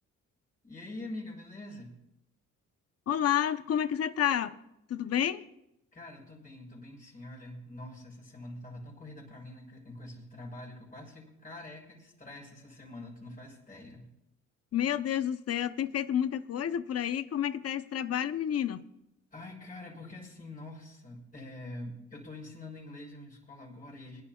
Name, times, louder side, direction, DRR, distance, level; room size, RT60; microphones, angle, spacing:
voice 1, 0.6-2.0 5.9-14.1 19.3-24.2, left 1 dB, 25° left, 6.3 m, -45 dB
voice 2, 3.1-4.6 4.9-5.5 14.7-18.8, left 10 dB, 55° left, 0.8 m, -30 dB
27.5 x 11.0 x 2.4 m
cardioid pair, 90°, 30 cm